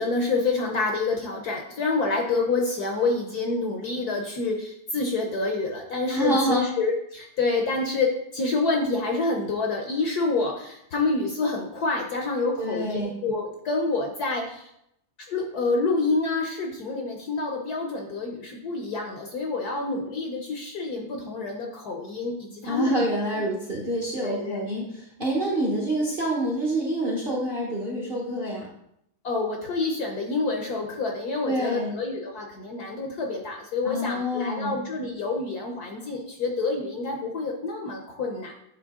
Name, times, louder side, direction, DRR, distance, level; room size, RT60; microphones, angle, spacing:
voice 1, 0.0-14.7 15.3-23.0 23.4-23.5 24.2-24.6 29.2-38.5, left 3 dB, 60° left, 1 dB, 1.1 m, -27 dB
voice 2, 6.1-6.6 12.6-13.1 22.6-24.9 25.2-28.7 31.4-31.9 33.8-34.7, right 1 dB, 35° right, -3 dB, 1.0 m, -27 dB
9.1 x 3.2 x 3.6 m, 0.75 s
omnidirectional pair, 2.3 m